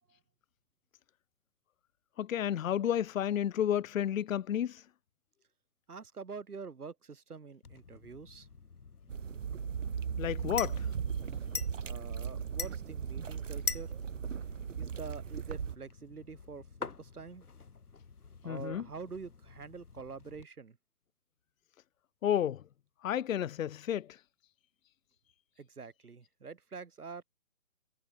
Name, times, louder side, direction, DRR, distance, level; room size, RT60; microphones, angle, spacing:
voice 1, 2.2-4.8 10.2-10.9 18.4-18.8 22.2-22.6 23.0-24.2, left 10 dB, 65° left, 0.6 m, -31 dB
voice 2, 5.9-8.5 11.8-13.9 14.8-17.4 18.4-20.8 25.6-27.2, right 5 dB, 80° right, 4.3 m, -46 dB
sound 1, 7.6-20.4, left 5 dB, 85° left, 3.3 m, -45 dB
sound 2, 9.1-15.8, right 7 dB, 55° right, 5.1 m, -37 dB
hypercardioid pair, 160°, 44 cm